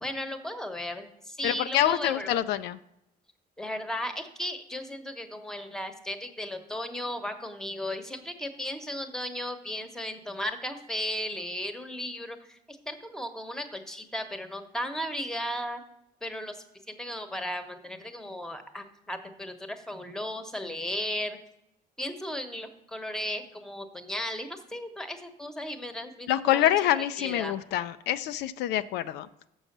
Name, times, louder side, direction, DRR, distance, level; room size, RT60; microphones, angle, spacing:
voice 1, 0.0-2.4 3.6-15.8 16.2-21.4 22.0-26.7 27.0-27.5, left 1 dB, 5° left, 7 dB, 1.0 m, -35 dB
voice 2, 1.4-2.8 26.3-29.3, left 12 dB, 85° left, 12 dB, 0.4 m, -26 dB
6.3 x 6.2 x 6.6 m, 0.82 s
cardioid pair, 110°, 17 cm